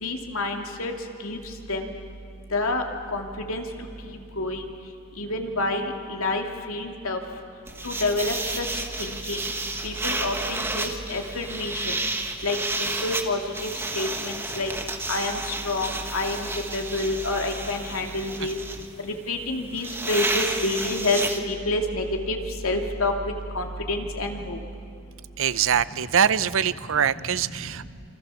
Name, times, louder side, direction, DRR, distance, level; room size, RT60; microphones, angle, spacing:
voice 1, 0.0-0.9 1.2-1.4 1.7-1.9 2.5-2.8 3.1-3.6 4.0-4.6 5.2-7.2 7.8-8.7 9.0-9.5 9.8-12.0 12.4-14.7 15.1-18.6 19.0-21.2 21.5-22.4 22.6-24.6, left 2 dB, 85° left, 3 dB, 2.7 m, -28 dB
sound 1, 7.7-21.4, right 2 dB, 10° right, 1.5 m, -31 dB
voice 2, 25.4-27.9, right 8 dB, 70° right, 17 dB, 0.6 m, -23 dB
28.0 x 26.0 x 7.1 m, 2.5 s
head